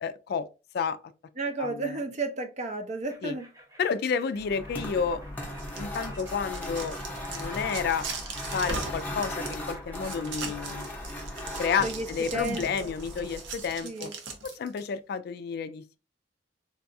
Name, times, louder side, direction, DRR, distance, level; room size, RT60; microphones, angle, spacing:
voice 1, 0.0-0.4 0.7-1.0 1.6-2.0 3.2-3.4 3.8-5.2 5.8-7.0 7.3-8.1 8.5-10.9 11.6-14.1 14.4-16.0, left 6 dB, 60° left, 0.3 m, -30 dB
voice 2, 1.4-3.5 11.8-12.1 12.3-12.9 13.8-14.1, right 2 dB, 40° right, 0.5 m, -32 dB
sound 1, 3.0-10.2, right 1 dB, 20° right, 0.9 m, -54 dB
sound 2, 4.4-13.8, left 1 dB, 10° left, 0.7 m, -38 dB
sound 3, 5.4-14.8, right 4 dB, 80° right, 0.7 m, -39 dB
3.9 x 2.3 x 2.6 m
head